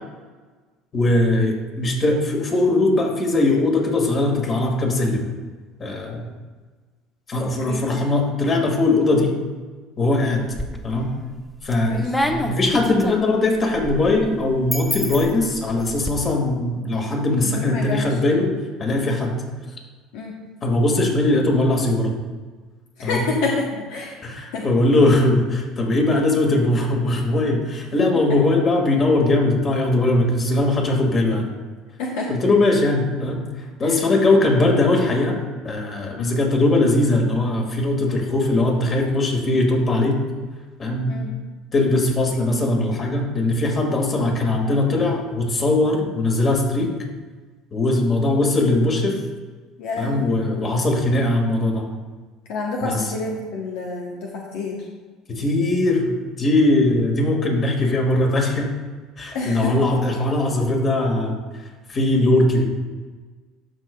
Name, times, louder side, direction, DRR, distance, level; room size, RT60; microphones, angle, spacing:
voice 1, 0.9-5.2 5.8-6.3 7.3-9.3 10.0-10.5 10.8-11.1 11.6-12.0 12.3-18.5 18.8-19.4 20.6-22.1 23.0-23.3 24.2-31.5 32.3-33.4 33.8-35.4 35.6-40.2 40.8-41.2 41.7-46.9 47.7-49.2 50.0-51.9 52.8-53.1 55.3-58.7 59.2-61.4 61.9-62.6, left 2 dB, 35° left, 1 dB, 1.9 m, -20 dB
voice 2, 7.4-7.8 11.8-12.1 17.4-18.1 20.1-20.4 23.0-24.2 24.5-24.7 32.0-32.3 36.2-36.3 41.1-41.3 49.8-50.3 52.5-54.8 59.3-59.7, left 3 dB, 75° left, -1 dB, 0.9 m, -28 dB
sound 1, 10.3-11.1 11.5-16.1, left 1 dB, 10° left, 0.7 m, -28 dB
13.5 x 5.0 x 2.3 m, 1.4 s
supercardioid pair, 90°, 0 cm